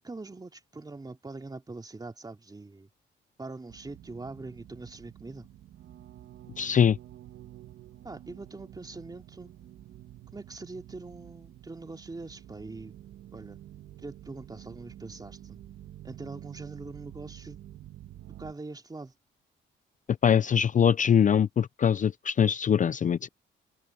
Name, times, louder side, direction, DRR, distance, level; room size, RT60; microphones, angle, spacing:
voice 1, 0.0-2.9 3.4-5.5 8.0-9.5 10.3-12.9 13.3-13.6 14.0-15.6 16.0-17.6 18.4-19.1, right 3 dB, 20° right, 2.9 m, -43 dB
sound 1, 3.7-18.5, right 12 dB, 75° right, 1.5 m, -49 dB
voice 2, 6.6-7.0 20.2-23.3, left 8 dB, 40° left, 0.6 m, -23 dB
cardioid pair, 90°, 20 cm